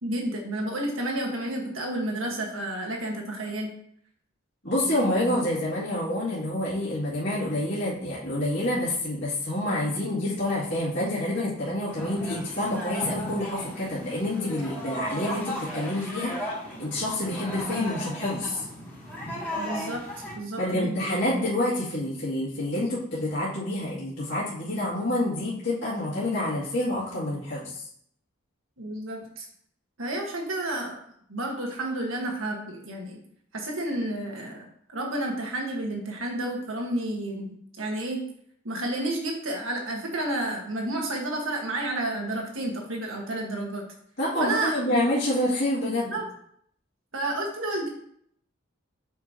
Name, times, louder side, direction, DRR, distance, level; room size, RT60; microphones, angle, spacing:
voice 1, 0.0-3.7 19.6-20.0 20.3-21.2 28.8-29.5 30.0-31.0 31.3-33.2 33.5-34.7 34.9-38.3 38.6-43.9 44.4-45.0 46.1-46.2 47.1-47.9, right 1 dB, 75° right, 1 dB, 1.5 m, -31 dB
voice 2, 4.6-16.5 16.8-18.6 20.6-27.9 44.2-46.2, left 1 dB, 60° left, -10 dB, 2.3 m, -28 dB
sound 1, 11.9-20.3, equal, 10° left, 2.1 m, -36 dB
7.6 x 5.2 x 2.9 m, 0.67 s
head